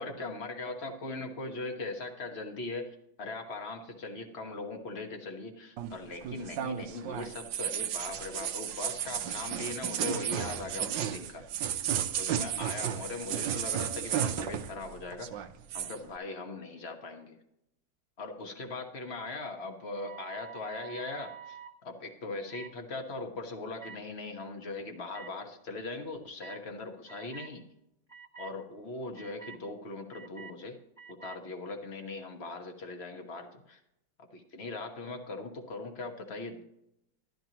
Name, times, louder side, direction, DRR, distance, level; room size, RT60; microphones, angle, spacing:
voice 1, 0.0-11.5 12.2-15.4 15.7-17.4 18.2-21.6 21.8-27.6 28.4-30.8 31.1-33.8 34.2-36.6, left 3 dB, 35° left, 4 dB, 1.2 m, -40 dB
sound 1, 5.8-14.9 15.1-16.0, right 10 dB, 70° right, 1.2 m, -33 dB
sound 2, 19.9-21.7 22.5-22.7 23.8-24.0 25.1-25.3 26.4-26.6 27.1-27.5 28.1-28.5 29.1-29.6 30.1-30.5 31.0-31.4, right 7 dB, 15° left, 1.1 m, -47 dB
12.0 x 12.0 x 2.9 m, 0.82 s
omnidirectional pair, 2.3 m